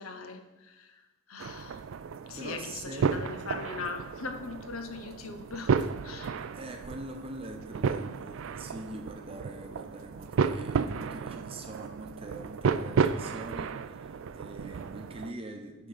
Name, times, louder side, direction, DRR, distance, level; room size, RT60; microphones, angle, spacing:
voice 1, 0.0-1.8 2.3-6.5, left 4 dB, 90° left, 7 dB, 0.9 m, -41 dB
sound 1, 1.4-15.3, right 6 dB, 75° right, 0.4 m, -33 dB
voice 2, 2.4-3.2 6.5-15.9, right 2 dB, 25° right, 4 dB, 0.8 m, -43 dB
9.1 x 3.7 x 6.7 m, 1.1 s
head